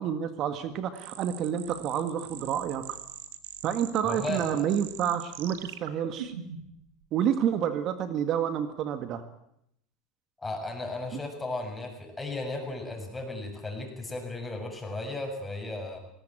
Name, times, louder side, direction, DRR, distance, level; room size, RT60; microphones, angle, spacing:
voice 1, 0.0-3.0 3.6-6.3 7.1-9.2, right 9 dB, 50° right, 10 dB, 1.9 m, -29 dB
sound 1, 1.0-6.8, right 9 dB, 85° right, 2.1 m, -42 dB
voice 2, 4.0-4.7 10.4-16.0, left 2 dB, 15° left, 3 dB, 7.2 m, -35 dB
19.5 x 18.5 x 9.1 m, 0.76 s
supercardioid pair, 100°, 0 cm